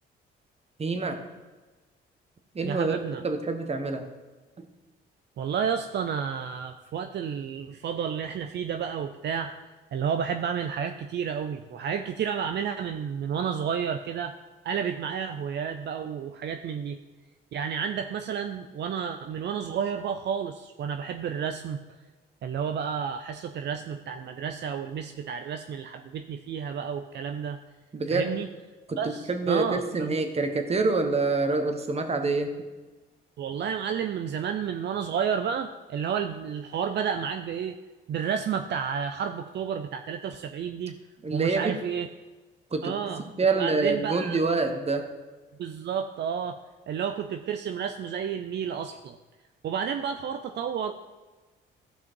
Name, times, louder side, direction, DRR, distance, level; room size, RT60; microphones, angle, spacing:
voice 1, 0.8-1.2 2.5-4.0 4.6-4.7 27.9-28.3 28.9-32.5 41.2-41.7 42.7-45.0, right 3 dB, 30° right, 6 dB, 1.4 m, -27 dB
voice 2, 2.6-3.2 5.4-9.6 9.9-14.3 14.6-17.0 17.5-22.0 22.4-27.6 28.1-28.5 29.0-30.2 33.4-37.8 38.1-41.0 41.3-42.1 42.8-43.2 43.5-44.4 45.6-46.6 46.9-49.2 49.6-50.9, right 7 dB, 60° right, 7 dB, 0.6 m, -31 dB
15.5 x 5.7 x 4.6 m, 1.3 s
cardioid pair, 90°, 20 cm